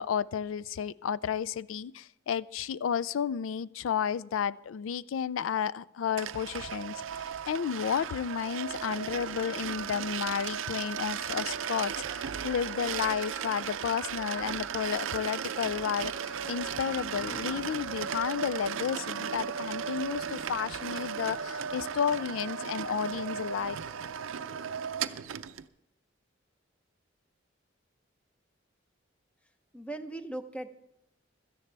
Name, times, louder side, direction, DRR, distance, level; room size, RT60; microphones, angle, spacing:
voice 1, 0.0-23.8, left 7 dB, 80° left, 17 dB, 0.4 m, -32 dB
sound 1, 6.2-25.7, right 7 dB, 85° right, 0.5 m, -36 dB
voice 2, 29.7-30.7, right 2 dB, 5° left, 9 dB, 0.7 m, -38 dB
16.5 x 13.5 x 3.3 m, 0.82 s
head